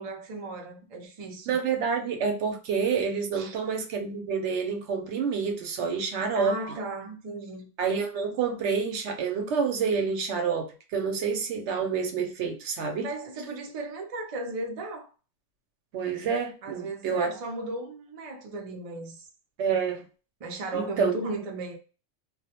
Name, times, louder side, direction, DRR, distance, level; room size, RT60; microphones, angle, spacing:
voice 1, 0.0-1.6 3.3-3.5 6.3-7.7 13.0-15.1 16.6-19.3 20.4-21.8, right 2 dB, 55° right, 0.4 m, -36 dB
voice 2, 1.5-6.5 7.8-13.1 15.9-17.3 19.6-20.0 20.7-21.1, right 6 dB, 70° right, 0.8 m, -28 dB
2.2 x 2.1 x 2.8 m
omnidirectional pair, 1.3 m